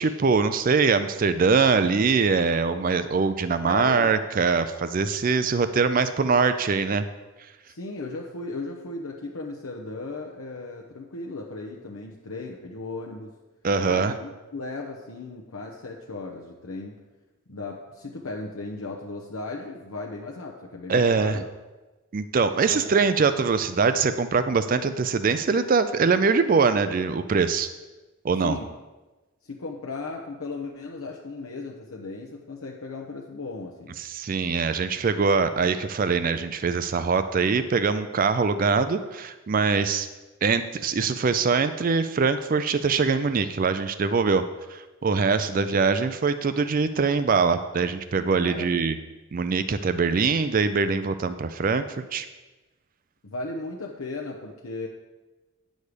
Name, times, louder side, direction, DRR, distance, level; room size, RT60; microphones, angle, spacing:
voice 1, 0.0-7.0 13.6-14.2 20.9-21.4 22.1-27.7 28.2-28.6 34.0-40.1 40.4-44.4 44.7-49.0 49.3-52.3, right 5 dB, 40° right, 11 dB, 0.4 m, -23 dB
voice 2, 3.6-4.1 7.7-13.3 13.8-17.0 17.5-21.4 22.7-23.1 28.4-28.7 29.4-34.0 45.5-45.6 48.4-48.7 53.2-54.9, left 3 dB, 85° left, 0 dB, 0.8 m, -36 dB
9.6 x 6.4 x 5.0 m, 1.2 s
head